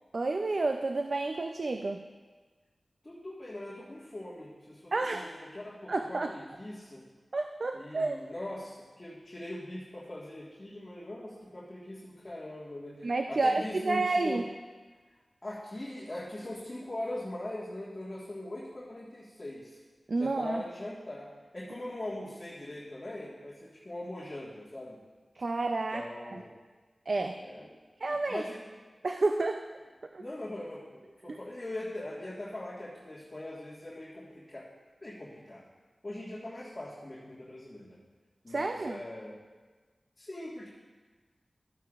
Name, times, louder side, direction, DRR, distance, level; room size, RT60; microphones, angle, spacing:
voice 1, 0.1-2.1 4.9-5.3 5.9-6.3 7.3-8.3 13.0-14.4 20.1-20.6 25.4-26.4 27.1-27.4 28.0-28.4 29.0-29.7 30.1-30.2 31.3-31.4 38.5-39.0, right 3 dB, 60° right, 5 dB, 0.4 m, -30 dB
voice 2, 3.0-7.0 7.7-14.4 15.4-19.8 20.2-25.0 25.9-26.5 27.4-27.7 28.1-28.6 30.2-34.7 35.0-35.7 36.0-38.0 38.4-39.4 40.2-40.7, left 1 dB, 30° left, -7 dB, 1.6 m, -41 dB
13.0 x 9.0 x 2.4 m, 1.4 s
wide cardioid pair, 80°, 0 cm